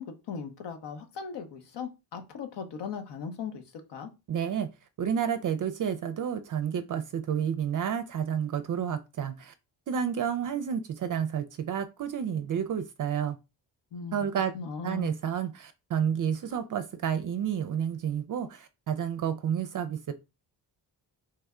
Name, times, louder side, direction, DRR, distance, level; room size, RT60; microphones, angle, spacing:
voice 1, 0.0-3.6 3.9-4.1 13.9-14.2 14.5-15.1, left 6 dB, 75° left, 0.9 m, -38 dB
voice 2, 4.3-4.7 5.0-9.5 9.9-13.4 14.1-14.5 14.8-20.1, right 8 dB, 50° right, 0.4 m, -30 dB
3.3 x 2.2 x 3.6 m
cardioid pair, 75°, 43 cm